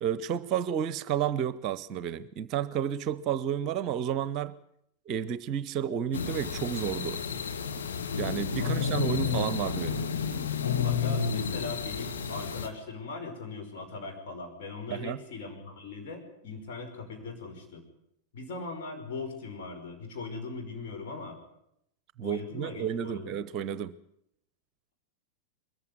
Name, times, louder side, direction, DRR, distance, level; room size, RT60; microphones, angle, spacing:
voice 1, 0.0-4.5 5.1-7.2 8.2-10.1 14.9-15.2 22.2-24.0, right 9 dB, 40° right, 17 dB, 0.7 m, -31 dB
sound 1, 6.1-12.7, left 6 dB, 65° left, 1.8 m, -31 dB
voice 2, 8.6-8.9 10.8-17.8 18.3-21.4 22.2-23.4, left 3 dB, 50° left, 3 dB, 5.3 m, -40 dB
22.0 x 14.5 x 9.4 m, 0.77 s
figure-of-eight pair, 90°, 0 cm